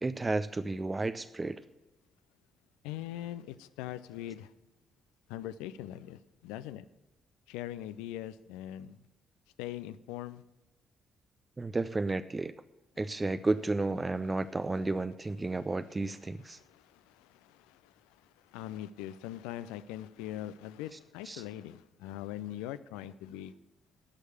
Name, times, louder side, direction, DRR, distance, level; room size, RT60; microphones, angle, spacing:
voice 1, 0.0-1.6 11.6-12.5 13.0-16.6 21.3-21.4, right 2 dB, 25° right, 12 dB, 0.5 m, -32 dB
voice 2, 2.8-4.5 5.3-6.9 7.5-9.0 9.6-10.4 15.5-15.6 16.4-23.5, left 12 dB, 70° left, 15 dB, 0.4 m, -42 dB
11.5 x 6.4 x 8.6 m, 1.1 s
figure-of-eight pair, 40°, 0 cm